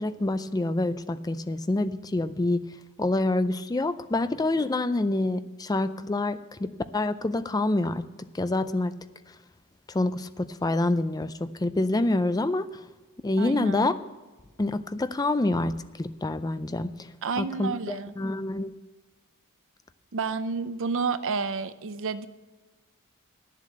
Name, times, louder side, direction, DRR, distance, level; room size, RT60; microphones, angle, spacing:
voice 1, 0.0-2.6 3.0-8.1 8.3-9.0 9.9-12.7 13.2-14.0 14.6-16.9 17.4-18.7, left 2 dB, 15° left, 12 dB, 0.4 m, -27 dB
voice 2, 13.4-13.9 17.2-18.1 20.1-22.3, right 5 dB, 60° right, 12 dB, 0.6 m, -30 dB
10.5 x 7.5 x 7.7 m, 1.2 s
head